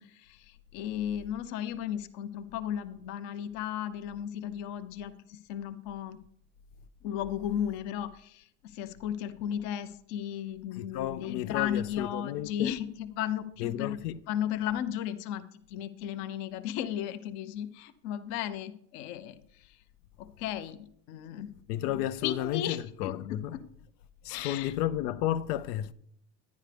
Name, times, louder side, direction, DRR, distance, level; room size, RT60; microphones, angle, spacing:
voice 1, 0.0-6.2 7.0-14.0 14.3-19.8 20.2-21.5 22.2-23.1 24.3-24.7, left 10 dB, 40° left, 0.5 m, -35 dB
voice 2, 10.7-12.7 13.6-14.2 21.7-23.6 24.2-25.9, left 12 dB, 80° left, 0.6 m, -32 dB
10.5 x 10.5 x 3.3 m
supercardioid pair, 165°, 46 cm